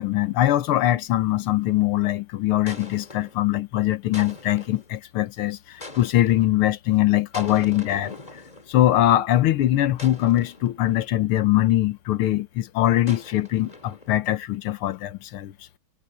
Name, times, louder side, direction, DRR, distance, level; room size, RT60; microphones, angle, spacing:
voice 1, 0.0-8.2 8.7-15.5, left 14 dB, 90° left, 1.8 m, -22 dB
sound 1, 1.4-1.7 2.7-3.4 4.1-4.9 5.8-6.6 7.3-9.0 10.0-11.2 13.1-14.3, left 2 dB, 20° left, 2.4 m, -42 dB
omnidirectional pair, 2.3 m